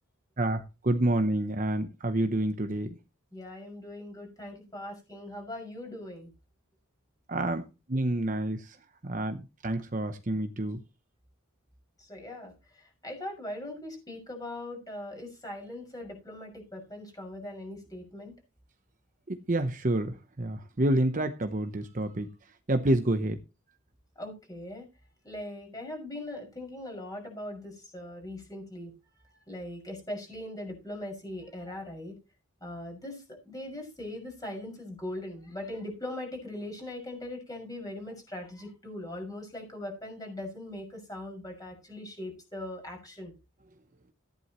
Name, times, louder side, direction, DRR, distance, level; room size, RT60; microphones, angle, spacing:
voice 1, 0.4-3.0 7.3-8.8 9.0-10.8 19.3-22.3 22.7-23.4, right 1 dB, 35° right, 0.9 m, -28 dB
voice 2, 3.3-6.3 12.0-18.3 24.2-24.9 25.2-28.9 29.2-32.2 32.6-43.3, left 1 dB, 15° left, 6.1 m, -40 dB
14.5 x 11.0 x 3.0 m
head